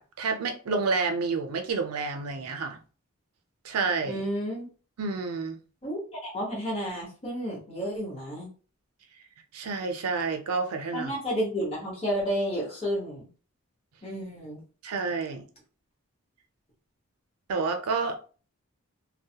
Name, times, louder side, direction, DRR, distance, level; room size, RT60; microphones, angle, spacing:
voice 1, 0.0-2.8 3.6-4.2 5.0-5.6 9.5-11.1 14.8-15.4 17.5-18.2, right 4 dB, 90° right, 0.5 m, -29 dB
voice 2, 4.0-4.7 5.8-8.5 10.9-13.3 14.0-14.6, equal, 25° left, 1.0 m, -31 dB
2.2 x 2.1 x 2.7 m
head